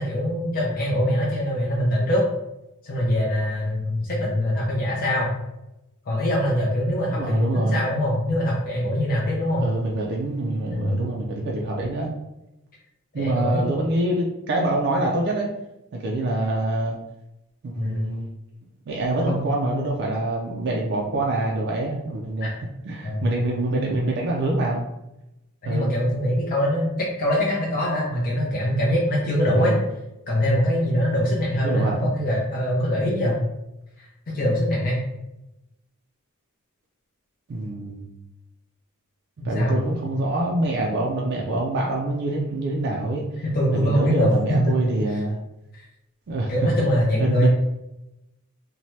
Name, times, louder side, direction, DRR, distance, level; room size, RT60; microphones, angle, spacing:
voice 1, 0.0-2.2 2.8-5.3 6.1-9.6 10.7-11.0 13.1-13.7 17.7-18.0 19.0-19.6 22.4-22.5 23.0-23.3 23.7-23.9 25.6-29.7 30.3-33.4 34.0-34.1 34.3-35.0 39.5-39.8 43.4-44.7 45.7-45.8 46.5-47.5, equal, 40° left, -4 dB, 0.5 m, -23 dB
voice 2, 7.1-7.9 9.6-12.1 13.1-15.5 15.9-17.0 17.6-18.3 18.9-22.5 22.8-24.8 25.6-25.9 29.6-29.8 31.6-32.0 37.5-38.1 39.4-43.2 43.7-45.4 46.3-46.8 47.2-47.5, right 2 dB, 50° right, -1 dB, 0.4 m, -25 dB
2.7 x 2.1 x 3.1 m, 0.91 s
head